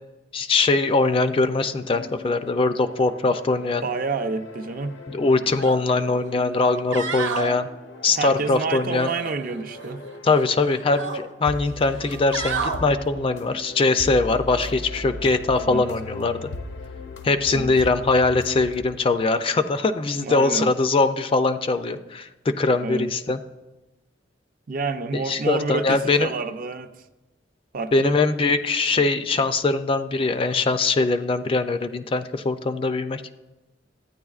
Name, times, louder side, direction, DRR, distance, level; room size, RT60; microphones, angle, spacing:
voice 1, 0.3-3.8 5.1-7.7 8.0-9.1 10.2-16.5 17.2-23.4 25.3-26.3 27.9-33.2, left 3 dB, 30° left, 0.4 m, -22 dB
sound 1, 1.3-18.8, left 2 dB, 75° left, 0.6 m, -39 dB
voice 2, 3.8-5.0 8.2-10.0 15.6-15.9 17.5-17.7 20.2-20.7 22.8-23.1 24.7-26.9 27.7-28.1, right 4 dB, 50° right, 0.5 m, -28 dB
sound 2, 5.6-5.8 6.2-6.3 6.7-7.5 9.0-9.9 10.3-11.2 11.9-12.8 14.5-14.7, right 5 dB, 80° right, 0.9 m, -30 dB
13.5 x 9.4 x 2.4 m
head